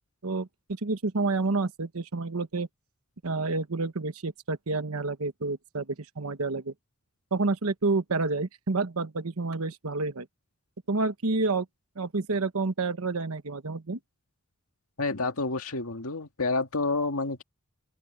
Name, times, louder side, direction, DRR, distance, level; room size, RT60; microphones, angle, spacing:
voice 1, 0.2-2.7 3.2-6.7 7.3-10.3 10.9-11.7 12.0-14.0, right 3 dB, 85° right, 1.1 m, -29 dB
voice 2, 15.0-17.4, left 3 dB, 90° left, 2.1 m, -29 dB
open air
head